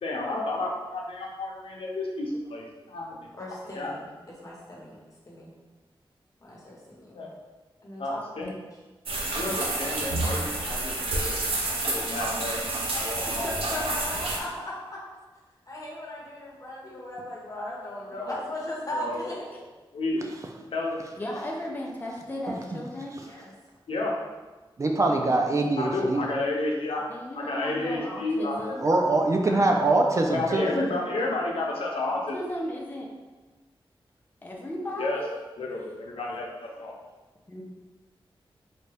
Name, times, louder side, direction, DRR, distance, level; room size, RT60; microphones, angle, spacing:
voice 1, 0.0-3.2 3.7-3.9 7.1-7.3 8.0-8.5 9.3-11.4 11.8-12.6 12.9-13.5 18.1-18.4 18.9-19.3 19.9-20.3 20.7-21.0 23.9-24.1 25.8-27.1 27.3-28.8 30.3-32.4 35.0-35.2 35.6-37.0, left 2 dB, 80° left, -2 dB, 0.6 m, -31 dB
voice 2, 3.3-5.6 6.4-7.3 7.8-8.6 13.2-15.0 15.7-19.6 23.2-23.4 29.4-29.7 30.2-31.6, left 1 dB, 35° left, -5 dB, 1.0 m, -38 dB
sound 1, 9.0-14.4, right 2 dB, 90° right, 0.6 m, -29 dB
voice 3, 21.2-23.2 27.1-28.9 32.0-33.1 34.4-35.4 37.5-37.6, left 1 dB, 20° left, -2 dB, 0.5 m, -35 dB
voice 4, 24.8-26.3 28.8-30.7, right 2 dB, 35° right, 2 dB, 0.3 m, -23 dB
4.0 x 2.2 x 3.3 m, 1.2 s
wide cardioid pair, 120°, 9 cm